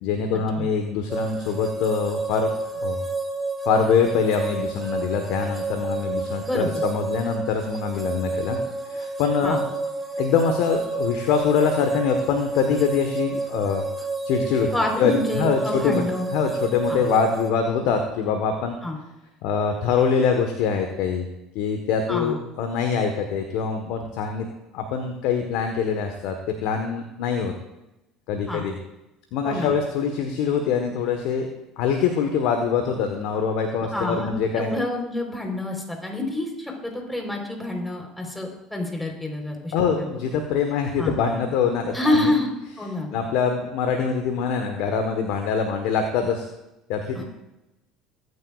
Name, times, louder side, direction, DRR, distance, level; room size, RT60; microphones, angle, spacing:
voice 1, 0.0-2.5 2.8-3.0 3.6-8.6 8.8-9.6 10.2-13.8 14.2-14.7 15.0-16.0 16.3-18.8 19.4-21.3 21.5-24.5 24.7-26.3 26.6-27.5 28.3-28.8 29.3-31.5 31.8-34.7 39.7-42.3 43.1-46.5 46.9-47.2, left 6 dB, 65° left, 5 dB, 1.3 m, -24 dB
sound 1, 1.1-17.5, right 3 dB, 20° right, 2.5 m, -30 dB
voice 2, 6.4-6.8 9.4-9.6 14.7-16.3 16.9-17.0 18.8-19.0 22.1-22.4 28.5-28.6 29.4-29.7 33.9-40.2 41.0-41.1 41.9-42.5 42.8-43.1 47.1-47.2, left 1 dB, 5° left, 1 dB, 4.1 m, -27 dB
21.0 x 9.7 x 2.5 m, 0.93 s
hypercardioid pair, 70°, 0 cm